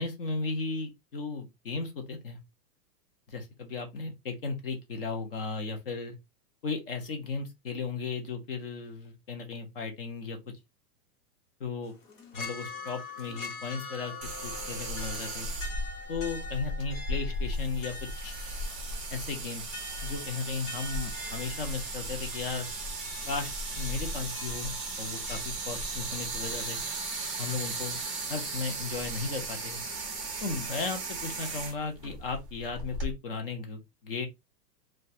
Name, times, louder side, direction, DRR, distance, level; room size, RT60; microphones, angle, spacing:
voice 1, 0.0-2.4 3.3-6.1 6.6-10.4 11.6-11.9 12.3-14.1 14.4-15.5 16.1-18.4 19.1-19.7 20.0-22.7 23.3-26.8 27.4-28.0 28.3-29.8 30.4-34.3, left 4 dB, 40° left, 0.4 m, -35 dB
sound 1, 11.8-25.4, left 3 dB, 55° left, 1.0 m, -44 dB
sound 2, 14.2-33.1, right 2 dB, 20° right, 0.5 m, -36 dB
2.3 x 2.2 x 2.6 m
supercardioid pair, 175°, 48 cm